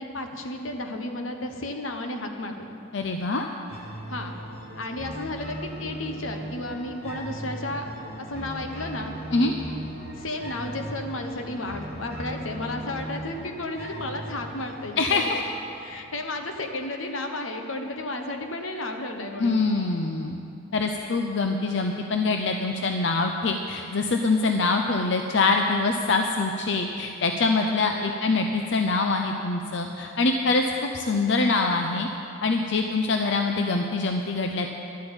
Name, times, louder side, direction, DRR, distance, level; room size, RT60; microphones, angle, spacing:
voice 1, 0.0-2.7 4.1-4.4 4.8-7.9 8.2-9.6 10.1-15.4 15.7-19.7 27.7-28.1, left 2 dB, 85° left, 5 dB, 1.2 m, -33 dB
voice 2, 2.9-3.5 9.3-9.5 15.0-15.4 19.4-20.4 20.7-32.1 32.4-34.7, left 3 dB, 60° left, 4 dB, 0.6 m, -24 dB
sound 1, 3.7-16.7, right 1 dB, 30° left, 2.5 m, -38 dB
11.5 x 8.1 x 8.7 m, 2.7 s
head